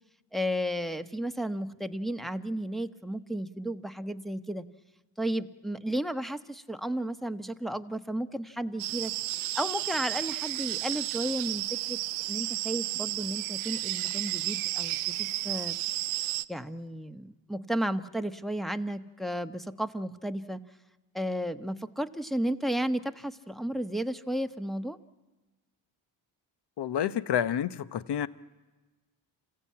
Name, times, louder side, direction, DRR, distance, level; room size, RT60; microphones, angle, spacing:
voice 1, 0.3-4.6 5.2-9.1 9.5-12.0 12.3-15.8 16.5-20.6 21.1-25.0, right 1 dB, ahead, 1.1 m, -33 dB
sound 1, 8.8-16.4, right 17 dB, 85° right, 0.6 m, -32 dB
voice 2, 26.8-28.3, left 9 dB, 55° left, 1.0 m, -29 dB
27.5 x 16.0 x 8.6 m
supercardioid pair, 55°, 48 cm